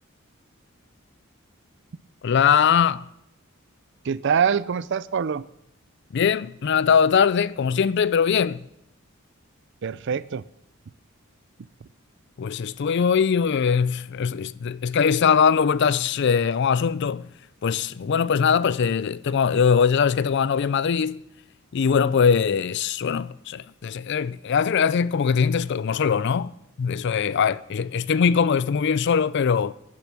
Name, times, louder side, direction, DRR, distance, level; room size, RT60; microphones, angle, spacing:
voice 1, 2.2-3.0 6.1-8.7 12.4-17.3 17.6-21.2 21.7-26.5 26.8-29.7, left 6 dB, 55° left, 0.4 m, -21 dB
voice 2, 4.0-5.5 9.8-10.4, right 7 dB, 55° right, 0.4 m, -24 dB
11.5 x 10.5 x 6.0 m
head